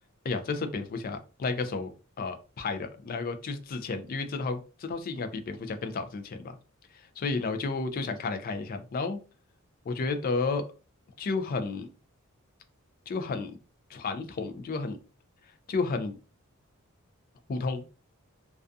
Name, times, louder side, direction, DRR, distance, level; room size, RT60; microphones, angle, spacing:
voice 1, 0.2-1.9 2.2-6.4 7.2-9.2 9.9-10.6 11.2-11.9 13.1-13.6 13.9-15.0 15.7-16.2 17.5-17.9, left 4 dB, 40° left, 8 dB, 0.3 m, -32 dB
2.5 x 2.3 x 2.3 m, 0.34 s
head